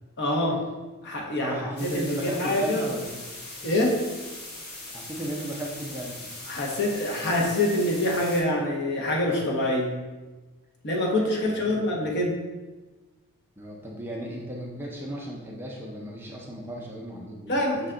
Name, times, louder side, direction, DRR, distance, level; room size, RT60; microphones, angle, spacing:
voice 1, 0.2-0.6 1.0-2.8 3.6-4.0 6.5-10.0 10.8-12.4 17.5-17.9, left 1 dB, 50° left, -1 dB, 0.8 m, -25 dB
voice 2, 1.4-3.2 4.5-4.7 4.9-6.3 11.4-12.0 13.6-17.9, right 1 dB, 10° right, -2 dB, 0.5 m, -35 dB
sound 1, 1.8-8.4, left 2 dB, 75° left, 1.0 m, -40 dB
5.6 x 2.2 x 3.7 m, 1.2 s
head